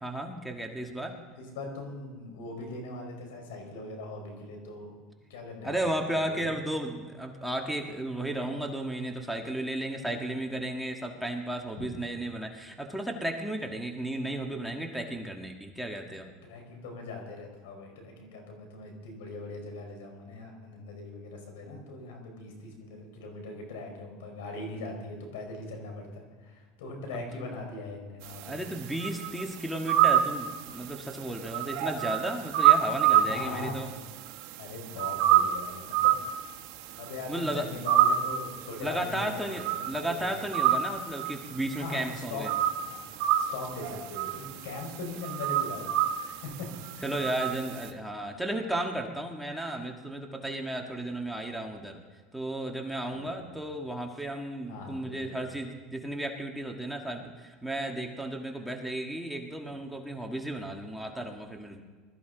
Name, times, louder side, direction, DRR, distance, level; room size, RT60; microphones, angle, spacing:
voice 1, 0.0-1.2 5.6-16.3 27.1-27.3 28.4-33.9 37.3-37.7 38.8-42.5 47.0-52.0 52.3-61.8, right 1 dB, ahead, 1 dB, 1.5 m, -34 dB
voice 2, 1.4-5.0 5.3-6.6 11.8-11.9 16.4-28.6 33.2-33.9 34.6-36.2 37.0-40.1 41.7-43.1 43.3-46.7 47.0-47.2 53.1-53.5 54.7-55.4 59.7-59.8, left 2 dB, 90° left, 3 dB, 4.6 m, -41 dB
sound 1, 28.3-33.9 34.1-47.9, right 11 dB, 70° right, 1.4 m, -26 dB
21.0 x 13.5 x 3.9 m, 1.5 s
supercardioid pair, 125°, 0 cm